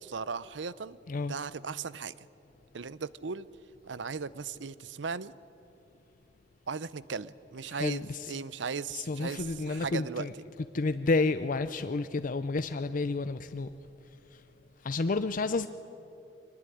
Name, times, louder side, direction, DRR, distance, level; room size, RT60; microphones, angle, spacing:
voice 1, 0.0-1.0 1.3-2.1 2.7-3.5 3.8-5.3 6.7-10.3, right 5 dB, 80° right, 18 dB, 0.7 m, -37 dB
voice 2, 7.7-8.2 8.9-10.3 10.7-13.7 14.8-15.7, left 3 dB, 50° left, 11 dB, 0.5 m, -30 dB
23.5 x 19.0 x 9.9 m, 2.9 s
head